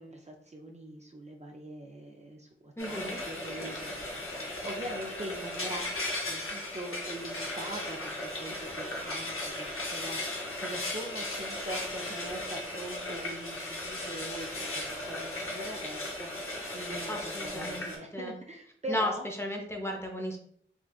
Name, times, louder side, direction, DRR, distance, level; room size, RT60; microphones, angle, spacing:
voice 1, 0.0-4.1 4.3-5.9 6.3-19.3, right 1 dB, 35° right, 1 dB, 0.4 m, -42 dB
Frying (food), 2.8-18.0, left 1 dB, 85° left, 0.7 m, -36 dB
voice 2, 2.8-3.2 17.1-18.4 18.9-20.4, equal, 10° left, 1 dB, 0.6 m, -35 dB
3.7 x 2.3 x 2.3 m, 0.66 s
wide cardioid pair, 55°, 21 cm